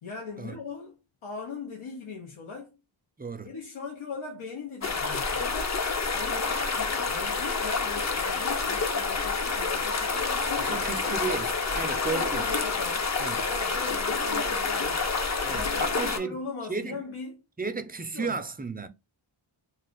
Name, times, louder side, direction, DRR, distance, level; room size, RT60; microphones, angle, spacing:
voice 1, 0.0-2.8 3.4-5.8 6.1-11.2 11.8-13.1 13.5-15.1 15.5-17.4 18.1-18.4, left 5 dB, 90° left, 0.8 m, -39 dB
voice 2, 3.2-3.6 10.6-12.5 13.2-13.5 15.4-16.4 16.7-17.0 17.6-18.9, right 4 dB, 20° right, 0.3 m, -34 dB
sound 1, 4.8-16.2, left 4 dB, 35° left, 0.5 m, -28 dB
2.5 x 2.4 x 3.6 m
wide cardioid pair, 90°, 49 cm